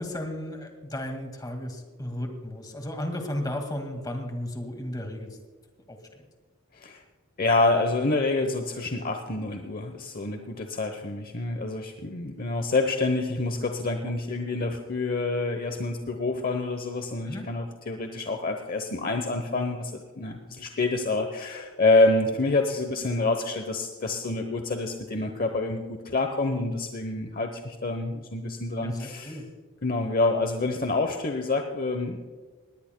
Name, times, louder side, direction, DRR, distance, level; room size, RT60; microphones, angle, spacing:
voice 1, 0.0-5.4 5.9-6.0 14.1-14.2 14.5-14.6 17.3-17.5 28.8-29.5, left 1 dB, 20° left, 4 dB, 1.9 m, -34 dB
voice 2, 7.4-29.4 29.8-32.2, left 2 dB, 45° left, 5 dB, 0.9 m, -27 dB
19.5 x 18.5 x 2.2 m, 1.4 s
head